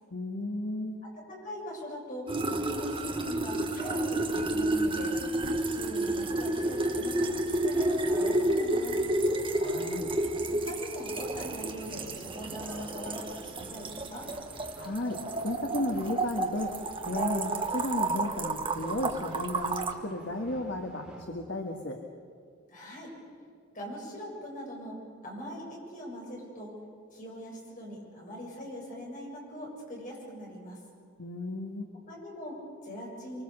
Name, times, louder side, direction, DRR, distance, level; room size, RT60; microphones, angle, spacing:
voice 1, 0.1-1.0 9.5-10.1 14.8-16.8 17.0-22.0 31.2-31.9, left 2 dB, 60° left, 2 dB, 1.8 m, -34 dB
voice 2, 1.3-5.1 5.6-9.0 10.5-14.3 22.7-23.2 23.7-25.0 25.2-26.7 27.1-30.8 32.1-33.4, equal, 40° left, -2 dB, 7.4 m, -42 dB
sound 1, 2.3-19.9, right 2 dB, 25° right, 1.3 m, -31 dB
sound 2, 3.0-21.2, right 1 dB, 5° right, 4.4 m, -47 dB
25.5 x 24.5 x 6.9 m, 2.1 s
head